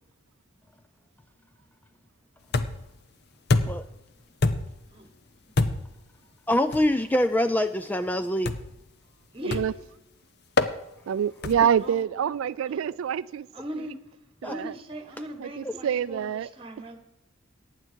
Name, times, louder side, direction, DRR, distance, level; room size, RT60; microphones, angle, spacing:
sound 1, 2.5-3.0 3.5-3.9 4.4-4.9 5.6-6.0 6.7-6.9 8.4-8.8 9.5-9.9 10.6-10.8 11.4-11.8, left 3 dB, 55° left, 0.8 m, -26 dB
voice 1, 6.5-8.5 14.4-14.5 15.7-15.8, left 1 dB, 10° left, 10 dB, 0.3 m, -24 dB
voice 2, 11.1-13.5 13.8-13.9 14.4-14.7 15.4-16.5, right 8 dB, 85° right, 16 dB, 0.3 m, -26 dB
voice 3, 13.5-14.0 14.4-17.0, right 1 dB, 25° right, 7 dB, 1.6 m, -38 dB
15.0 x 9.8 x 4.6 m, 0.93 s
head